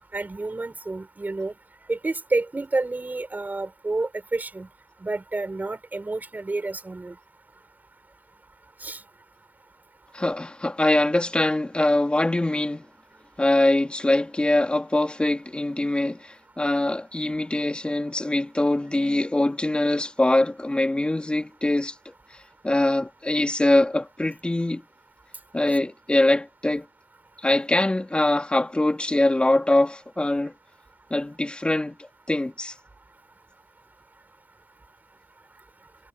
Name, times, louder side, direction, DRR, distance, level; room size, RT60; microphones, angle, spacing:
voice 1, 0.1-1.5 1.9-4.7 5.0-7.2 8.8-9.0, right 2 dB, 20° right, 5.6 m, -29 dB
voice 2, 10.1-12.9 13.4-21.9 22.6-24.8 25.5-26.9 27.4-30.5 31.1-32.7, left 1 dB, 10° left, 2.6 m, -23 dB
wide cardioid pair, 130°, 9 cm